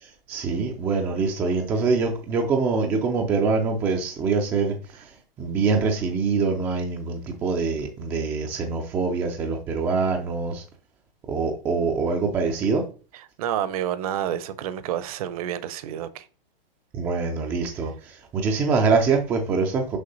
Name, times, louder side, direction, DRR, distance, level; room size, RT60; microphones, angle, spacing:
voice 1, 0.3-4.7 5.4-10.6 11.3-12.8 16.9-20.0, right 4 dB, 10° right, 0.4 m, -24 dB
voice 2, 13.1-16.3, right 10 dB, 40° right, 0.7 m, -29 dB
6.6 x 5.3 x 3.9 m
hypercardioid pair, 150°, 30 cm